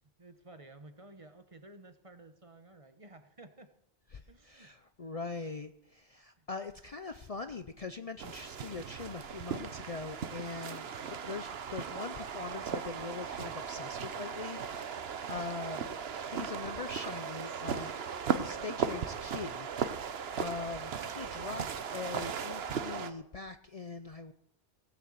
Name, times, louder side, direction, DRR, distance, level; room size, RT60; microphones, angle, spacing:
voice 1, 0.2-3.7 4.3-4.7 6.4-6.5, right 2 dB, 30° right, 9 dB, 1.1 m, -54 dB
voice 2, 4.1-21.7 21.9-24.3, left 4 dB, 40° left, 9 dB, 0.6 m, -42 dB
sound 1, 8.2-23.1, right 7 dB, 70° right, 1.1 m, -37 dB
17.0 x 6.8 x 7.8 m, 0.74 s
omnidirectional pair, 1.1 m